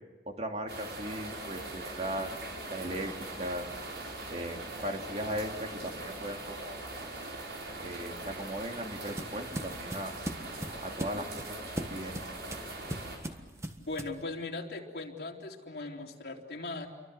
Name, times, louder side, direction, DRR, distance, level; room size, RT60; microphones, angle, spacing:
voice 1, 0.3-3.1 3.4-3.7 4.3-6.8 7.8-10.1 10.8-11.4 11.9-12.2, right 1 dB, 40° right, 3 dB, 2.7 m, -38 dB
sound 1, 0.7-13.2, right 2 dB, 80° right, 6.4 m, -41 dB
sound 2, 8.2-14.2, right 1 dB, 15° right, 1.5 m, -40 dB
voice 2, 13.8-16.9, left 3 dB, 65° left, 0 dB, 3.6 m, -39 dB
30.0 x 24.0 x 7.9 m, 1.3 s
head